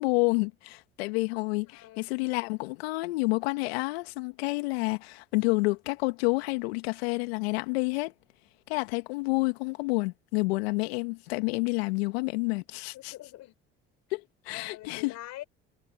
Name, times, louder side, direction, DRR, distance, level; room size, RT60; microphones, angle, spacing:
voice 1, 0.0-8.1 8.7-13.1 14.1-15.2, left 27 dB, 80° left, 2.0 m, -29 dB
voice 2, 1.7-2.1 9.9-10.1 12.9-13.5 14.5-15.4, left 15 dB, 65° left, 5.1 m, -45 dB
hypercardioid pair, 70°, 31 cm